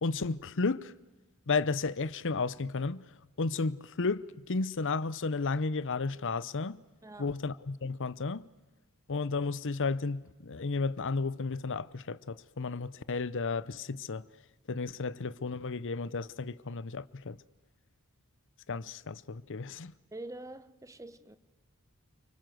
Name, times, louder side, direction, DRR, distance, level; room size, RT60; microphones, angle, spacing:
voice 1, 0.0-0.9 1.5-3.0 3.4-6.8 7.2-8.5 9.1-14.3 14.7-17.4 18.7-19.9, left 4 dB, 60° left, 0.8 m, -33 dB
voice 2, 7.0-7.4 20.1-21.4, right 2 dB, 15° right, 1.2 m, -45 dB
29.5 x 24.5 x 7.9 m
head